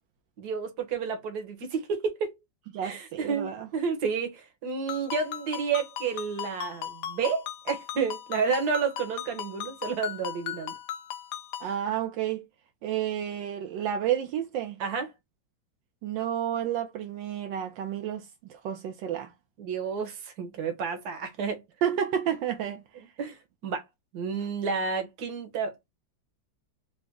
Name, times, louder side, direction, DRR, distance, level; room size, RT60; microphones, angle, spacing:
voice 1, 0.4-2.3 2.8-10.7 14.8-15.1 19.6-21.6 23.2-23.4 23.6-23.8 24.1-25.9, right 5 dB, 65° right, 1.5 m, -30 dB
voice 2, 2.7-3.7 11.6-12.5 12.8-14.8 16.0-19.3 21.8-22.8, right 10 dB, 80° right, 1.3 m, -30 dB
Ringtone, 4.9-11.7, left 11 dB, 70° left, 1.1 m, -38 dB
4.0 x 2.1 x 3.5 m
omnidirectional pair, 2.0 m